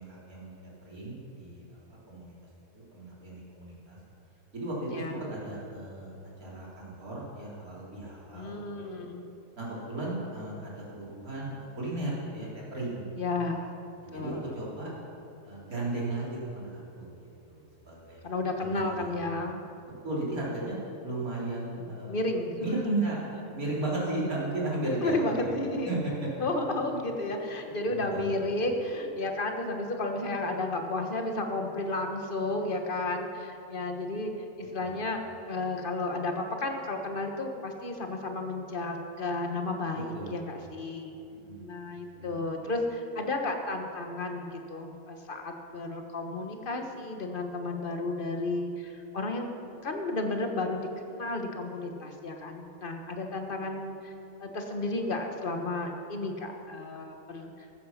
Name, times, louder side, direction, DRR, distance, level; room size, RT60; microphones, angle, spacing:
voice 1, 0.0-1.6 2.1-2.3 2.7-4.0 4.5-6.1 6.4-9.0 9.6-13.1 14.0-14.9 15.4-18.2 18.6-19.1 19.9-22.2 22.6-23.2 23.5-25.5 25.9-26.3 27.9-28.4 34.8-35.0 39.9-40.4 41.4-41.6 42.1-42.4, right 2 dB, 75° right, -5 dB, 4.3 m, -35 dB
voice 2, 4.9-5.3 8.3-9.3 13.1-13.8 14.1-14.5 18.2-19.6 21.8-23.0 25.0-25.9 26.4-34.3 34.6-41.2 41.6-49.5 49.8-54.1 54.4-57.7, left 2 dB, 35° left, 4 dB, 1.5 m, -33 dB
15.0 x 14.0 x 5.9 m, 2.7 s
omnidirectional pair, 1.5 m